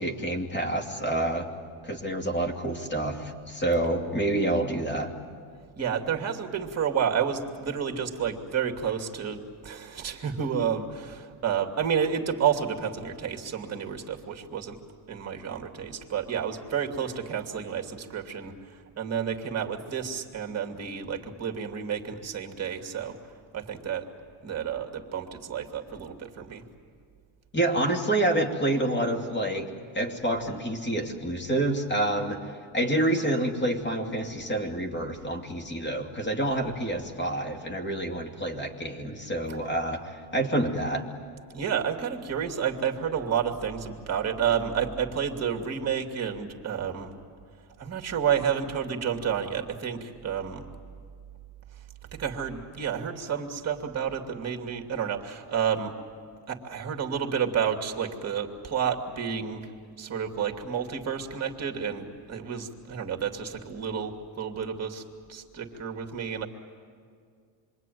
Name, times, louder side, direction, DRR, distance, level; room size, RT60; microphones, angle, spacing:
voice 1, 0.0-1.5 1.8-5.1 27.5-29.7 29.9-41.1, right 1 dB, 25° left, 3 dB, 2.7 m, -28 dB
voice 2, 5.8-14.8 15.1-23.2 23.5-24.1 24.4-26.6 41.5-47.2 47.8-50.7 52.1-55.9 56.5-59.7 60.0-65.0 65.3-66.5, right 7 dB, 35° right, 2 dB, 2.5 m, -30 dB
27.0 x 23.5 x 9.3 m, 2.2 s
cardioid pair, 135°, 45 cm